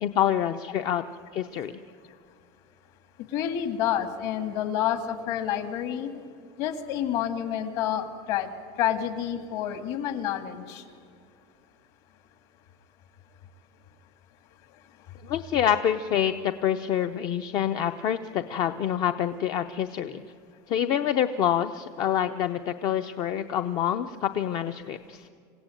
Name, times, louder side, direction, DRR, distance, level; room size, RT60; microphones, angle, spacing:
voice 1, 0.0-1.0 1.3-1.7 15.2-20.2 20.7-25.3, left 10 dB, 35° left, 9 dB, 0.6 m, -26 dB
voice 2, 3.3-6.1 6.6-8.5 8.8-10.8, left 10 dB, 55° left, 9 dB, 2.0 m, -28 dB
27.0 x 16.5 x 9.1 m, 2.4 s
cardioid pair, 175°, 12 cm